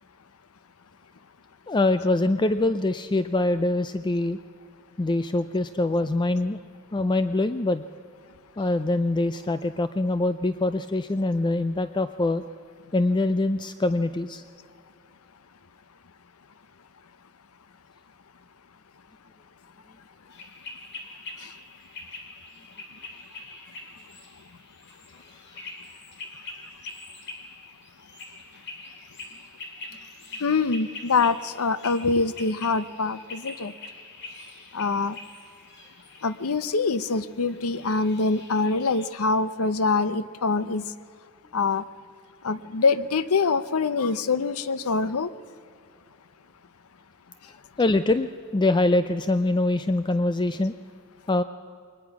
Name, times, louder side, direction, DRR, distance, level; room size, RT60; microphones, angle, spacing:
voice 1, 1.7-4.4 5.0-6.6 6.9-7.8 8.6-12.4 12.9-14.4 47.8-50.7 51.3-51.4, left 2 dB, 20° left, 11 dB, 0.4 m, -24 dB
sound 1, 20.3-39.1, left 3 dB, 55° left, 3.4 m, -44 dB
voice 2, 30.4-33.7 34.7-35.2 36.2-40.9 41.5-41.8 42.4-45.3, left 4 dB, 90° left, 15 dB, 0.8 m, -24 dB
22.5 x 20.0 x 6.0 m, 2.4 s
head